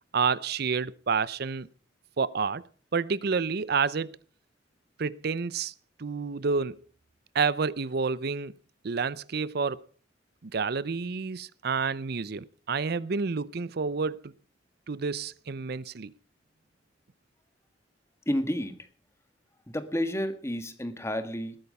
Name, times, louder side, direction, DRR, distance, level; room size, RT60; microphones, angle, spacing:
voice 1, 0.1-1.7 2.2-2.6 2.9-4.2 5.0-5.7 6.0-6.8 7.3-8.6 8.8-9.8 10.4-14.3 14.9-16.1, right 5 dB, 60° right, 0.6 m, -29 dB
voice 2, 18.2-18.9 19.7-21.6, equal, 15° left, 1.6 m, -30 dB
20.0 x 9.0 x 5.4 m
head